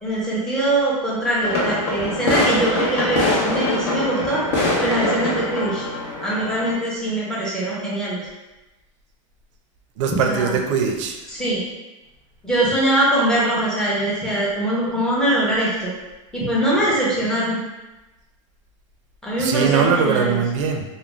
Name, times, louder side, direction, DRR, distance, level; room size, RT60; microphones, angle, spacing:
voice 1, 0.0-4.4 4.8-5.9 6.2-8.2 10.1-10.6 11.3-11.6 12.4-15.9 16.3-17.6 19.2-20.4, right 1 dB, 5° left, -8 dB, 0.6 m, -22 dB
sound 1, 1.4-6.7, left 2 dB, 50° left, 0.7 m, -23 dB
voice 2, 10.0-11.2 19.4-20.8, right 6 dB, 60° right, 4 dB, 0.4 m, -21 dB
2.4 x 2.1 x 3.1 m, 1.0 s
supercardioid pair, 160°, 18 cm